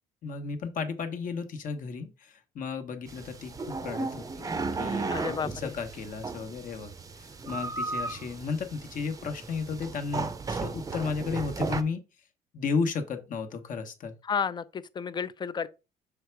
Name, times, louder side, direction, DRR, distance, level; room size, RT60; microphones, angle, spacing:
voice 1, 0.2-12.0 12.5-14.1, left 5 dB, 50° left, 1.2 m, -34 dB
sound 1, 3.1-11.8, right 3 dB, 20° right, 0.6 m, -35 dB
voice 2, 5.1-5.7 14.2-15.7, left 6 dB, 25° left, 0.5 m, -32 dB
6.4 x 3.4 x 4.6 m
cardioid pair, 110°, 17 cm